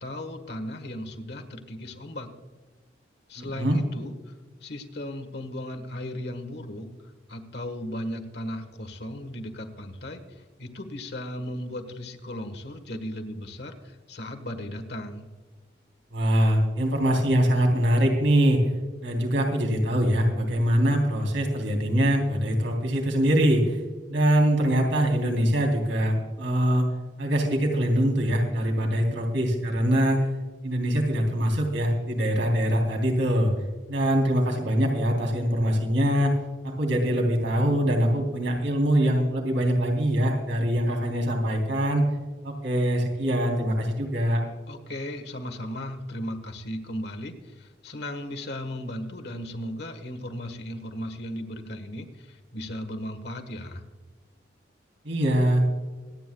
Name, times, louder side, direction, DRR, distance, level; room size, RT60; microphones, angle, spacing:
voice 1, 0.0-2.3 3.3-4.3 4.6-6.9 7.3-15.3 44.7-53.8, left 1 dB, 60° left, 7 dB, 1.4 m, -36 dB
voice 2, 3.4-3.8 16.1-18.6 19.0-23.8 24.1-26.8 27.2-30.2 30.6-33.5 33.9-36.4 36.6-42.0 42.4-44.4 55.0-55.6, equal, 85° right, 0 dB, 3.4 m, -23 dB
25.5 x 9.5 x 2.3 m, 1.4 s
head